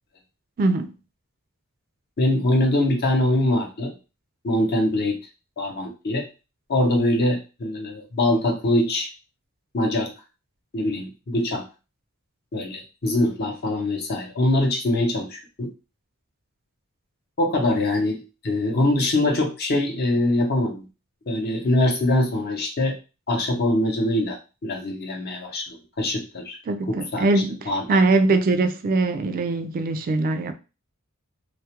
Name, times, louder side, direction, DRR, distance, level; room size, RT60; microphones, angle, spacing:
voice 1, 0.6-0.9 26.7-30.5, right 3 dB, 40° right, 0.3 m, -22 dB
voice 2, 2.2-3.9 4.4-5.2 5.6-6.3 6.7-9.1 9.7-10.1 10.7-11.6 12.5-15.7 17.4-20.8 21.3-22.9 23.3-26.6 26.9-27.3 27.7-28.0, left 1 dB, 50° left, 0.6 m, -23 dB
2.3 x 2.0 x 2.8 m
head